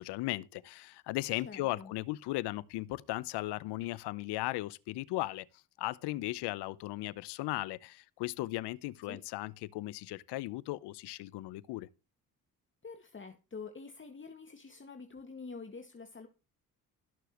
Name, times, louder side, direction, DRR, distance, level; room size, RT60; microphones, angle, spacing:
voice 1, 0.0-5.5 5.8-11.9, left 18 dB, 85° left, 0.8 m, -37 dB
voice 2, 1.5-1.9 9.1-9.2 12.8-16.3, left 4 dB, 30° left, 1.9 m, -47 dB
18.0 x 6.9 x 3.0 m
supercardioid pair, 55°, 40 cm